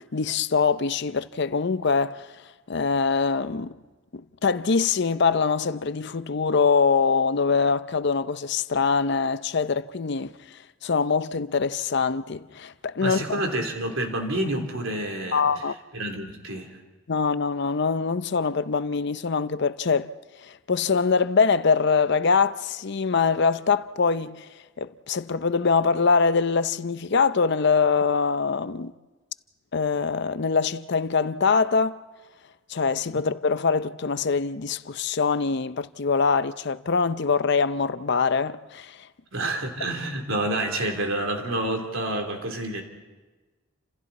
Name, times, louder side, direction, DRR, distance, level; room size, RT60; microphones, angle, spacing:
voice 1, 0.0-2.3 2.7-3.7 4.1-10.3 10.8-13.4 15.3-15.7 17.1-20.1 20.4-24.5 24.8-28.9 29.7-32.0 32.7-39.1, left 5 dB, 55° left, 0.6 m, -23 dB
voice 2, 13.0-15.5 15.9-16.8 39.3-42.8, right 1 dB, 75° right, 3.5 m, -28 dB
29.5 x 27.0 x 4.2 m
head